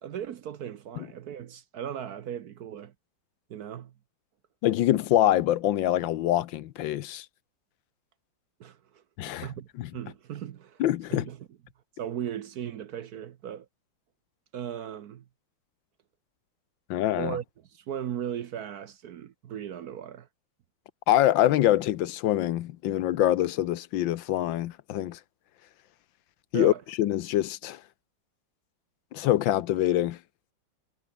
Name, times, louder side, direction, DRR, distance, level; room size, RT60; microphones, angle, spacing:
voice 1, 0.0-2.9 3.5-3.9 8.6-10.8 11.1-11.5 12.0-13.7 14.5-15.2 17.2-17.4 17.7-20.3 26.5-26.8, right 9 dB, 60° right, 1.2 m, -37 dB
voice 2, 4.6-7.2 9.2-9.5 9.8-9.9 10.8-11.3 16.9-17.4 21.1-25.2 26.5-26.7 27.0-27.8 29.1-30.2, left 13 dB, 75° left, 1.5 m, -25 dB
omnidirectional pair, 2.1 m